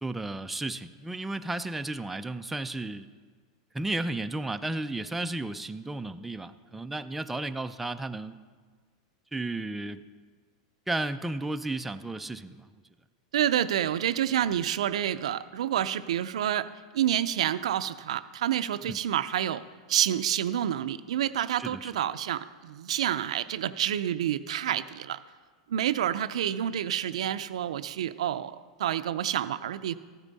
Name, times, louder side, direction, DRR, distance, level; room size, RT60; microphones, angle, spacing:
voice 1, 0.0-3.1 3.7-8.4 9.3-10.0 10.9-12.7 18.9-19.0 21.6-21.9, right 2 dB, 5° right, 8 dB, 0.3 m, -33 dB
voice 2, 13.3-19.6 19.9-25.2 25.7-30.0, right 10 dB, 85° right, 12 dB, 0.5 m, -28 dB
14.5 x 9.9 x 4.1 m, 1.5 s
supercardioid pair, 140°, 3 cm